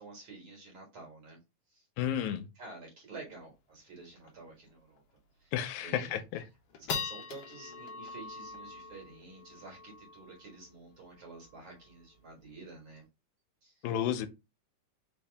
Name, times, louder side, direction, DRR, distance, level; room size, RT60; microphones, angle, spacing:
voice 1, 0.0-1.4 1.7-1.9 2.6-5.0 5.4-5.5 5.8-6.2 6.8-13.0 13.6-13.9, right 3 dB, 50° right, 1.9 m, -50 dB
voice 2, 2.0-2.5 5.5-6.4 13.8-14.3, left 10 dB, 85° left, 2.0 m, -32 dB
sound 1, 3.4-3.5 3.7-3.8 4.2-4.5 5.0-5.1 5.6-6.0 6.4-13.0, left 6 dB, 70° left, 1.5 m, -43 dB
4.6 x 2.7 x 3.3 m
omnidirectional pair, 3.4 m